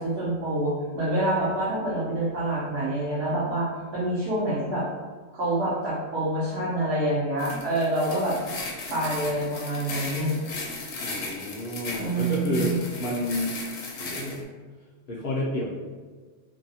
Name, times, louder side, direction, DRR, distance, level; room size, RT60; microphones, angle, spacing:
voice 1, 0.0-4.9 5.3-8.4 8.9-10.4 12.0-12.8, right 1 dB, 60° right, -8 dB, 0.9 m, -27 dB
sound 1, 7.4-14.4, left 3 dB, 80° left, 1.0 m, -36 dB
voice 2, 11.0-13.5 14.0-14.4 15.1-15.7, left 1 dB, 55° left, -4 dB, 0.7 m, -30 dB
2.6 x 2.2 x 2.7 m, 1.5 s
omnidirectional pair, 1.3 m